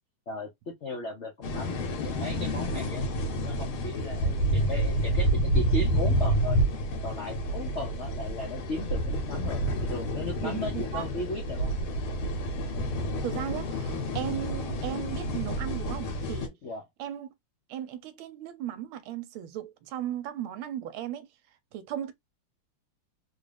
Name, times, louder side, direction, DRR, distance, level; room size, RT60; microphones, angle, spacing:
voice 1, 0.3-3.1 3.4-6.6 7.0-11.7 16.6-16.8, left 2 dB, 70° left, 0.6 m, -36 dB
sound 1, 1.4-16.5, right 1 dB, 90° left, 1.9 m, -29 dB
voice 2, 10.4-11.1 13.2-16.6 17.0-17.3 17.7-21.3 21.7-22.1, right 11 dB, 85° right, 1.4 m, -36 dB
3.8 x 2.4 x 3.3 m
omnidirectional pair, 2.3 m